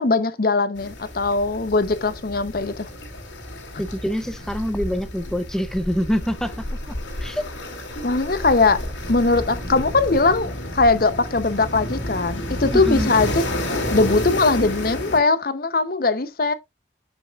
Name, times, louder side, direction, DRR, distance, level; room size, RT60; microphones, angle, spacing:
voice 1, 0.0-2.9 8.0-8.8 9.1-16.5, left 3 dB, 50° left, 0.7 m, -20 dB
sound 1, 0.8-15.2, left 1 dB, 80° left, 2.3 m, -31 dB
voice 2, 3.8-7.4 12.7-13.1, equal, 5° left, 0.6 m, -26 dB
7.6 x 7.1 x 2.4 m
head